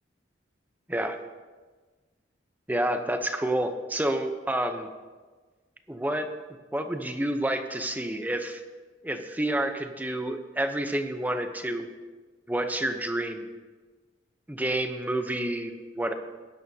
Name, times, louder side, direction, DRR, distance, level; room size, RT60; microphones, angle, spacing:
voice 1, 2.7-4.9 5.9-6.3 6.7-8.6 9.0-11.9 12.5-13.5 14.5-16.1, right 1 dB, 10° right, 7 dB, 0.8 m, -29 dB
19.0 x 10.5 x 2.8 m, 1.4 s
head